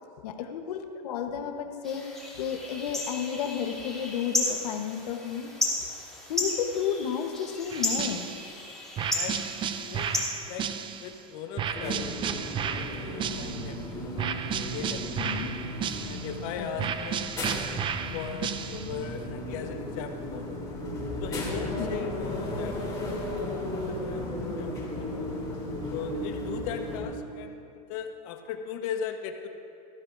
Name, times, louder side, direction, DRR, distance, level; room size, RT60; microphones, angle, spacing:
voice 1, 0.2-2.1 2.4-5.5 6.3-8.3 15.2-15.5 16.6-16.9 21.8-21.9, left 8 dB, 90° left, 5 dB, 1.2 m, -32 dB
sound 1, 1.8-11.2, left 2 dB, ahead, 3.1 m, -34 dB
sound 2, 7.7-8.6 9.0-11.2 11.6-13.8 14.2-16.4 16.8-19.0, right 8 dB, 25° right, 0.5 m, -33 dB
voice 2, 9.1-9.4 9.7-10.7 11.0-12.0 12.3-14.2 14.4-15.5 16.1-17.4 18.1-20.6 21.2-23.4 23.7-25.3 25.9-27.6 27.9-29.5, left 7 dB, 65° left, 5 dB, 1.3 m, -39 dB
sound 3, 11.7-27.0, left 1 dB, 20° left, 3.6 m, -35 dB
20.0 x 14.0 x 2.7 m, 2.6 s
supercardioid pair, 130°, 19 cm